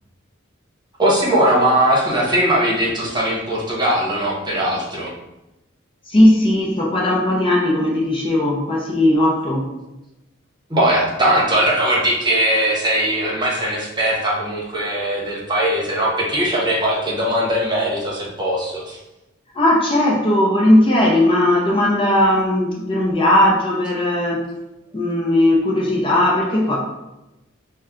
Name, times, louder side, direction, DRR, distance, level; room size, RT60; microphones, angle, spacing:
voice 1, 1.0-5.1 10.7-19.0, right 1 dB, 20° right, -4 dB, 1.1 m, -19 dB
voice 2, 6.1-9.7 19.5-24.5 24.9-26.8, left 1 dB, 25° left, -2 dB, 0.6 m, -17 dB
5.3 x 2.2 x 3.6 m, 0.96 s
head